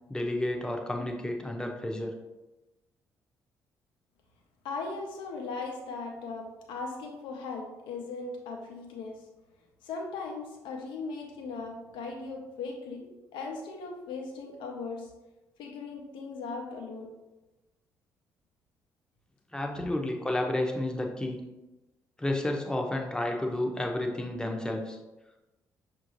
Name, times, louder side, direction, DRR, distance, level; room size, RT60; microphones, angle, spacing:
voice 1, 0.1-2.1 19.5-21.4 22.2-25.0, left 1 dB, 10° left, 2 dB, 0.8 m, -31 dB
voice 2, 4.6-9.3 9.8-15.1 15.6-17.1, left 4 dB, 70° left, 2 dB, 0.8 m, -38 dB
6.1 x 2.6 x 3.1 m, 1.0 s
hypercardioid pair, 45°, 9 cm